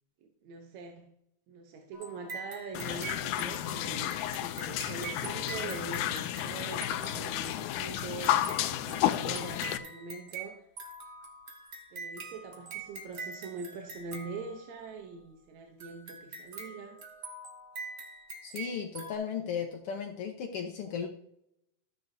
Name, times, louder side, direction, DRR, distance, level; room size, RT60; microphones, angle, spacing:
voice 1, 0.2-1.1 1.5-10.7 11.9-17.0, right 4 dB, 75° right, 2.1 m, -43 dB
sound 1, 1.9-15.0 15.8-19.1, right 4 dB, 45° right, 1.4 m, -45 dB
sound 2, 2.7-9.8, left 12 dB, 90° left, 2.1 m, -32 dB
voice 2, 18.4-21.1, left 7 dB, 70° left, 1.4 m, -35 dB
13.5 x 7.9 x 2.7 m
omnidirectional pair, 3.5 m